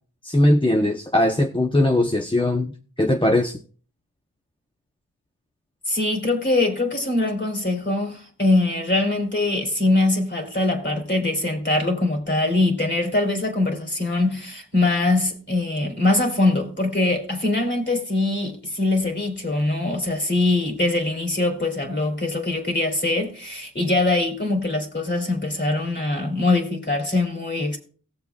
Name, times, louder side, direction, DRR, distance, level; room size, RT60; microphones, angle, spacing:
voice 1, 0.2-3.6, left 1 dB, 15° left, 0.8 m, -20 dB
voice 2, 5.9-27.8, left 2 dB, 30° left, 3.0 m, -22 dB
17.5 x 7.4 x 2.3 m
wide cardioid pair, 85°, 35 cm